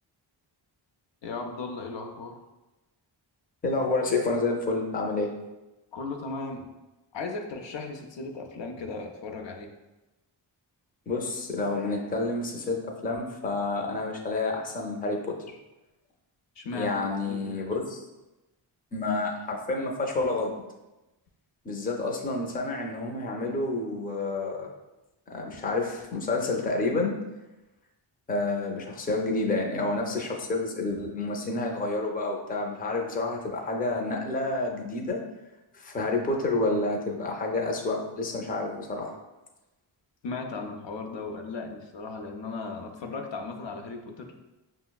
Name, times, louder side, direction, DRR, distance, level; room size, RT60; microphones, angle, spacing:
voice 1, 1.2-2.4 5.9-6.6 7.1-9.7 16.6-17.5 40.2-44.3, left 3 dB, 65° left, 3 dB, 0.5 m, -36 dB
voice 2, 3.6-5.3 11.1-15.3 16.7-18.0 18.9-20.5 21.6-24.7 25.3-27.2 28.3-35.2 35.7-39.1, left 2 dB, 20° left, 1 dB, 0.5 m, -29 dB
5.6 x 2.0 x 2.2 m, 1.0 s
cardioid pair, 65°, 47 cm